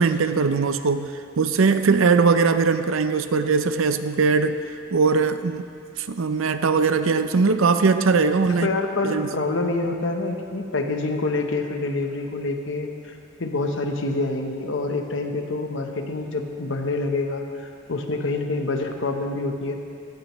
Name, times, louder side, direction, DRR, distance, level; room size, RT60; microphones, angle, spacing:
voice 1, 0.0-4.6 4.9-5.6 6.0-8.7 9.0-9.3, right 4 dB, 75° right, 10 dB, 0.6 m, -20 dB
voice 2, 8.4-19.8, left 2 dB, 65° left, 4 dB, 1.0 m, -27 dB
15.5 x 12.5 x 3.1 m, 2.4 s
head